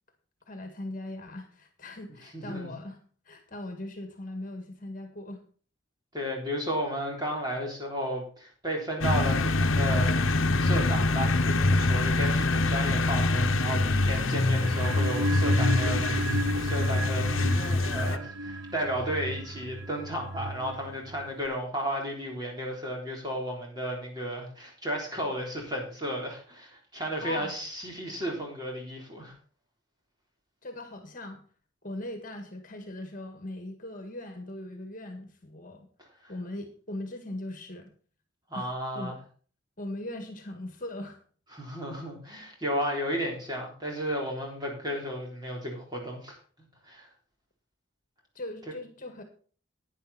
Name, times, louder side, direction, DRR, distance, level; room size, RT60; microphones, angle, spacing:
voice 1, 0.5-5.4 27.2-27.5 30.6-31.4 31.8-35.9 36.3-37.9 38.5-38.7 38.9-39.2 39.8-41.2 48.3-49.2, left 1 dB, 40° left, 6 dB, 1.8 m, -39 dB
voice 2, 2.3-2.7 6.1-29.3 38.5-39.1 41.5-46.4 46.9-47.1, equal, 20° right, -1 dB, 3.6 m, -33 dB
sound 1, 9.0-18.2, left 2 dB, 90° left, 1.0 m, -25 dB
sound 2, 14.5-21.5, right 1 dB, 70° right, 0.6 m, -35 dB
11.0 x 9.7 x 4.2 m, 0.41 s
head